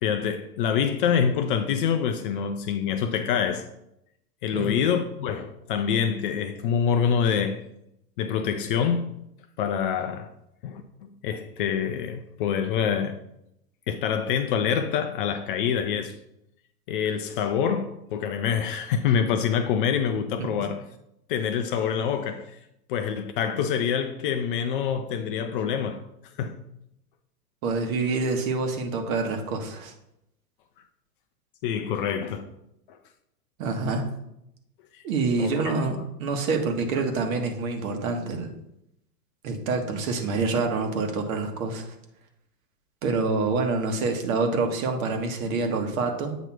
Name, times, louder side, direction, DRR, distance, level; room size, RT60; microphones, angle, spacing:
voice 1, 0.0-3.7 4.4-7.6 8.2-9.2 9.6-10.3 10.6-13.2 13.9-16.2 16.9-20.8 21.3-22.6 22.9-26.0 26.4-26.6 31.6-32.5 32.9-33.0 34.9-35.0 35.4-35.7, left 7 dB, 35° left, 0.4 m, -26 dB
voice 2, 27.6-29.9 33.6-34.1 35.0-38.5 39.4-41.9 43.0-46.4, right 3 dB, 60° right, 1.5 m, -26 dB
8.1 x 3.0 x 5.9 m
hypercardioid pair, 120°, 48 cm